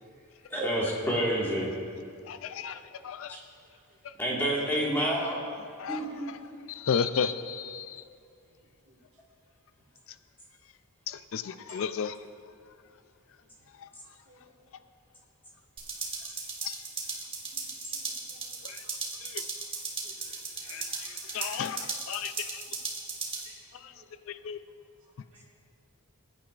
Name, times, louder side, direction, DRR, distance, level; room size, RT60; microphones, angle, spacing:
voice 1, 0.5-1.7 3.3-3.4 4.2-5.4 5.9-6.3, equal, 10° left, -5 dB, 1.7 m, -28 dB
voice 2, 2.3-3.4 4.0-4.1 5.8-6.0 6.7-8.0 11.1-12.2 13.8-13.9 16.6-16.8 18.6-18.8 19.2-19.4 20.7-22.6 23.8-23.9 24.3-24.6, left 7 dB, 60° left, 12 dB, 0.3 m, -33 dB
sound 1, 15.8-23.5, right 4 dB, 25° right, 1.5 m, -37 dB
voice 3, 17.9-18.7 20.0-20.4 23.4-23.6 23.8-24.0 25.3-25.4, right 2 dB, 60° right, -3 dB, 1.9 m, -60 dB
20.0 x 9.3 x 2.5 m, 2.3 s
head